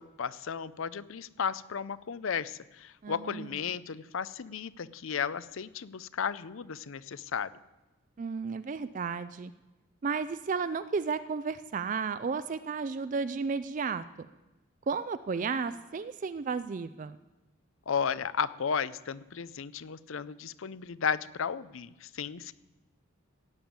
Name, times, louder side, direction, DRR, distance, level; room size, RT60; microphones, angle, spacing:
voice 1, 0.0-7.5 17.9-22.5, left 6 dB, 70° left, 17 dB, 0.5 m, -34 dB
voice 2, 3.0-3.6 8.2-9.5 10.0-14.3 14.9-17.2, right 5 dB, 40° right, 13 dB, 0.4 m, -33 dB
16.0 x 7.1 x 8.9 m, 1.1 s
head